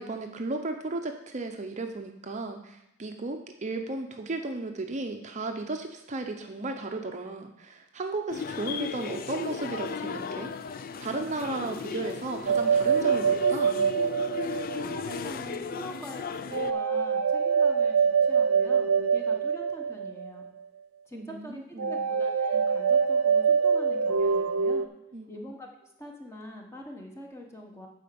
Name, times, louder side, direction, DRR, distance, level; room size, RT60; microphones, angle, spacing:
voice 1, 0.0-10.5 11.0-13.8 21.1-22.0 25.1-25.4, right 2 dB, 35° right, 5 dB, 0.6 m, -35 dB
sound 1, 8.3-16.7, left 5 dB, 45° left, 0.4 m, -36 dB
sound 2, 12.5-15.1 16.5-20.4 21.8-24.9, right 6 dB, 90° right, 0.5 m, -25 dB
voice 2, 14.7-20.5 21.1-24.9 25.3-27.9, equal, 15° left, 1 dB, 1.2 m, -44 dB
8.7 x 5.0 x 6.9 m, 0.83 s
head